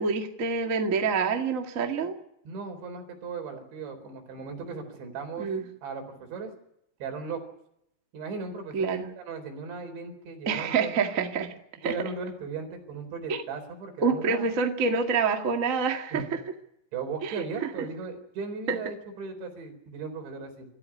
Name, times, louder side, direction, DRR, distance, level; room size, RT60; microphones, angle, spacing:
voice 1, 0.0-2.2 5.4-5.6 8.7-9.1 10.4-11.5 11.8-11.9 13.3-13.4 14.0-16.4 17.2-17.9 18.7-18.8, right 5 dB, 60° right, 4 dB, 0.8 m, -27 dB
voice 2, 2.5-5.5 5.8-6.5 7.0-7.4 8.1-10.9 11.8-14.5 16.1-16.3 16.9-20.7, right 5 dB, 75° right, 4 dB, 6.4 m, -37 dB
25.5 x 14.0 x 9.8 m, 0.80 s
omnidirectional pair, 5.2 m